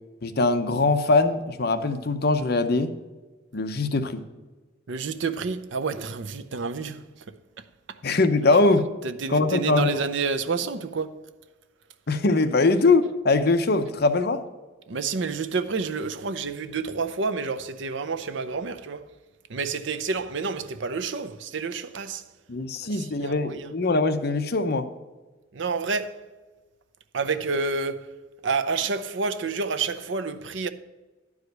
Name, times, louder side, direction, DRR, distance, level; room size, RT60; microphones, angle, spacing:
voice 1, 0.2-2.9 3.5-4.2 8.0-8.9 9.3-9.9 12.1-14.4 22.5-24.9, left 3 dB, 50° left, 0.7 m, -22 dB
voice 2, 4.9-7.2 7.6-8.0 9.0-11.3 14.9-19.1 19.5-22.3 22.8-23.7 25.5-26.3 27.1-30.7, right 4 dB, 65° right, 0.6 m, -29 dB
10.5 x 4.8 x 6.5 m
head